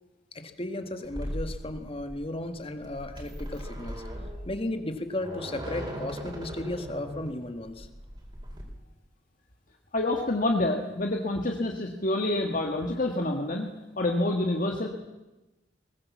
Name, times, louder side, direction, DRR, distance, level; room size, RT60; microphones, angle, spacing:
voice 1, 0.3-4.0 4.5-7.9, left 1 dB, 30° left, 7 dB, 1.7 m, -35 dB
sound 1, 1.0-8.6, equal, 25° right, 4.5 m, -39 dB
voice 2, 9.9-14.9, left 2 dB, 50° left, 1 dB, 1.7 m, -27 dB
21.5 x 19.0 x 7.3 m, 1.0 s
head